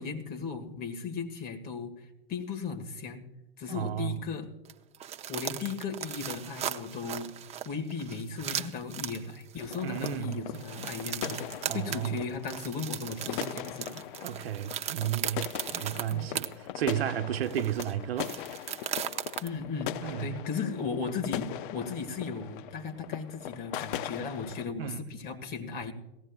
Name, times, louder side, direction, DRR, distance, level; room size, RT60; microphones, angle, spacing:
voice 1, 0.0-3.3 3.6-4.5 5.3-7.3 7.6-11.4 11.7-14.0 16.1-16.3 19.4-25.9, left 5 dB, 30° left, 1.9 m, -36 dB
voice 2, 3.7-4.2 9.8-10.4 11.7-12.3 14.2-18.4 20.0-20.3 24.8-25.1, right 11 dB, 75° right, 0.9 m, -33 dB
sound 1, 4.6-16.5 16.9-17.0 17.4-19.5, right 10 dB, 20° right, 0.6 m, -37 dB
sound 2, 9.6-24.6, left 12 dB, 55° left, 0.6 m, -40 dB
18.5 x 15.5 x 2.4 m
hypercardioid pair, 125°, 30 cm